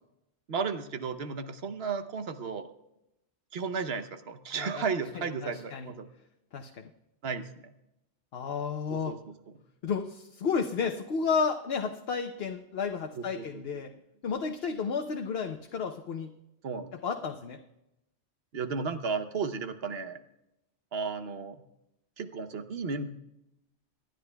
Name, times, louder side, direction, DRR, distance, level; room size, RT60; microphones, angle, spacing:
voice 1, 0.5-2.7 3.5-6.1 7.2-7.7 8.9-9.2 13.1-13.8 16.6-16.9 18.5-20.2 20.9-21.6 22.2-23.2, right 5 dB, 70° right, 8 dB, 1.1 m, -34 dB
voice 2, 5.4-5.9 6.5-6.8 8.3-9.1 9.8-13.9 14.2-16.3 17.0-17.6, left 5 dB, 70° left, 4 dB, 1.0 m, -32 dB
26.0 x 10.5 x 2.3 m, 0.88 s
omnidirectional pair, 1.1 m